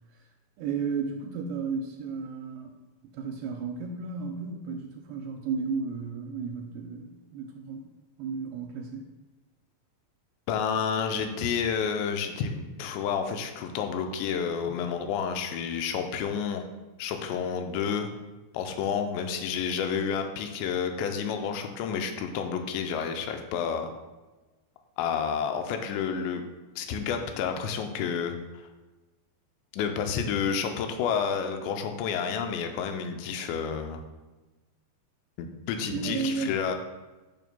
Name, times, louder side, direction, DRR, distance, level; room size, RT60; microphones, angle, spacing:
voice 1, 0.6-2.7 3.1-7.9 8.2-9.1 35.8-36.6, right 5 dB, 80° right, 3 dB, 2.4 m, -33 dB
voice 2, 10.5-16.7 17.0-18.1 18.5-23.9 25.0-26.4 26.8-28.7 29.7-34.0 35.4-36.8, left 7 dB, 85° left, 5 dB, 2.9 m, -30 dB
10.5 x 5.9 x 2.2 m, 1.2 s
omnidirectional pair, 5.0 m